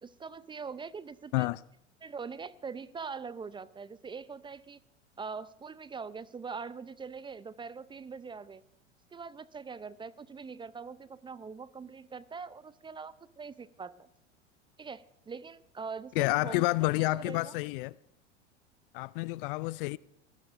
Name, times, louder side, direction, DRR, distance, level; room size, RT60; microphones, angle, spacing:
voice 1, 0.0-1.5 2.0-4.8 5.2-8.6 9.1-14.1 14.8-17.6, right 5 dB, 15° right, 0.5 m, -43 dB
voice 2, 16.2-17.9 18.9-20.0, left 22 dB, 50° left, 0.4 m, -29 dB
23.5 x 15.5 x 2.6 m
hypercardioid pair, 90°, 37 cm